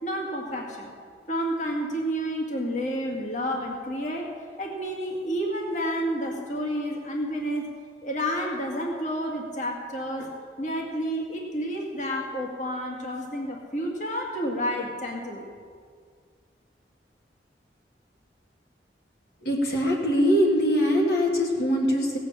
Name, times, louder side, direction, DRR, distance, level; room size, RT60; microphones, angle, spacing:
voice 1, 0.0-0.9 1.3-7.7 8.0-15.5, equal, 45° left, 0 dB, 1.9 m, -30 dB
voice 2, 19.4-22.2, equal, 60° left, -2 dB, 1.8 m, -22 dB
17.5 x 8.2 x 7.3 m, 2.1 s
head